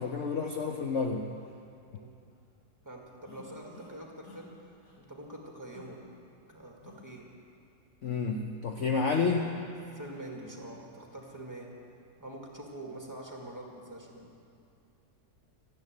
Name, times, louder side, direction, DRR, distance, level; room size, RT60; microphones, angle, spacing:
voice 1, 0.0-1.3 8.0-9.5, left 4 dB, 55° left, 3 dB, 1.0 m, -30 dB
voice 2, 2.8-4.5 5.0-6.0 6.5-7.3 9.2-9.5 9.9-11.7 12.2-14.3, right 1 dB, 10° right, -1 dB, 2.0 m, -45 dB
sound 1, 3.3-4.0 4.2-4.5 4.8-5.0 5.7-5.9 6.8-7.1, left 4 dB, 75° left, 2.5 m, -52 dB
13.5 x 10.5 x 9.0 m, 2.4 s
omnidirectional pair, 1.7 m